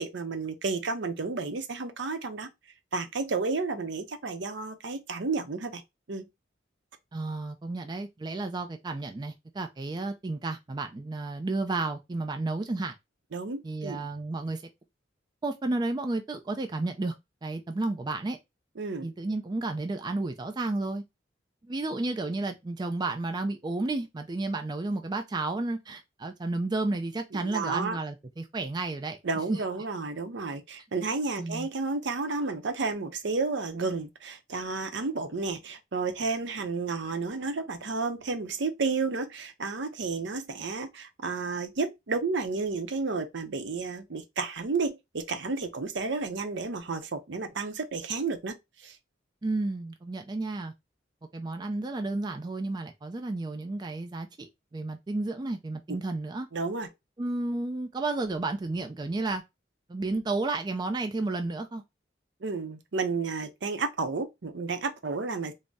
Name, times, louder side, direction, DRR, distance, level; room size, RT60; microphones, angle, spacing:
voice 1, 0.0-2.5 2.9-5.8 6.1-6.3 13.3-14.0 18.8-19.1 27.4-28.0 29.2-48.5 48.8-49.0 56.5-56.9 62.4-65.5, right 4 dB, 65° right, 0.6 m, -31 dB
voice 2, 7.1-12.9 13.6-14.6 15.4-17.1 17.4-18.4 19.0-21.0 21.6-29.2 29.5-29.6 31.4-31.7 49.4-50.7 51.3-56.5 57.2-59.4 59.9-61.8, right 2 dB, 20° right, 0.4 m, -32 dB
3.9 x 2.0 x 3.4 m
head